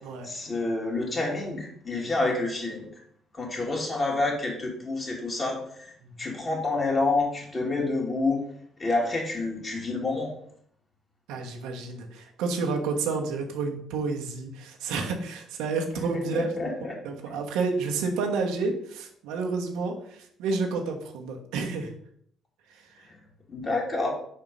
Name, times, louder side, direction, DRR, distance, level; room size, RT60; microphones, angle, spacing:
voice 1, 0.2-2.9 3.3-5.9 6.2-8.4 8.8-10.3 16.3-17.0 23.5-24.1, left 2 dB, 30° left, -1 dB, 2.2 m, -28 dB
voice 2, 11.3-16.5 17.0-21.9, right 4 dB, 90° right, 2 dB, 1.1 m, -30 dB
4.7 x 4.3 x 5.3 m, 0.66 s
cardioid pair, 85°, 0 cm